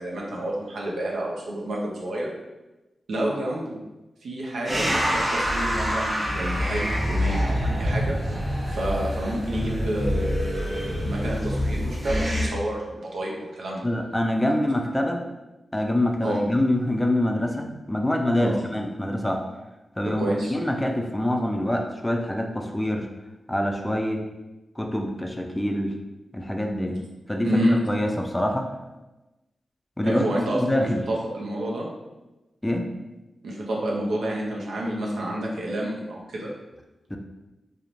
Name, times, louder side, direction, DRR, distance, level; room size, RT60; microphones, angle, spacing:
voice 1, 0.0-2.3 3.1-3.8 4.2-8.4 8.7-13.8 16.2-16.4 18.4-18.6 20.2-20.5 26.9-27.0 27.4-27.8 30.0-31.8 33.4-36.5, right 1 dB, 90° right, -3 dB, 0.5 m, -29 dB
sound 1, 4.7-12.5, equal, 30° right, 0.9 m, -26 dB
voice 2, 13.8-15.3 15.7-19.4 20.0-23.1 23.5-24.2 24.8-25.9 26.3-27.0 27.3-28.7 30.0-30.3 30.5-31.0 32.6-32.9 37.1-37.2, left 1 dB, 10° left, 3 dB, 0.3 m, -25 dB
2.9 x 2.0 x 2.5 m, 1.1 s
cardioid pair, 60°, 0 cm